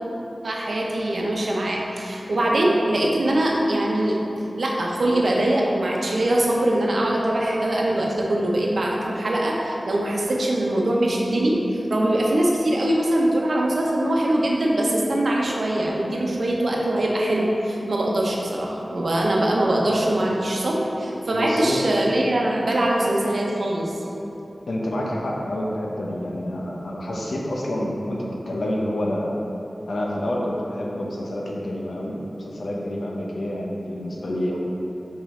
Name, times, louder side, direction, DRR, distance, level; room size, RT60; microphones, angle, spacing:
voice 1, 0.4-4.2 4.6-11.6 11.9-23.9, right 1 dB, 75° right, -2 dB, 0.8 m, -22 dB
voice 2, 21.3-21.8 24.7-29.3 29.9-34.6, left 1 dB, 85° left, -2 dB, 0.8 m, -28 dB
5.4 x 5.2 x 3.7 m, 3.0 s
wide cardioid pair, 75°, 0 cm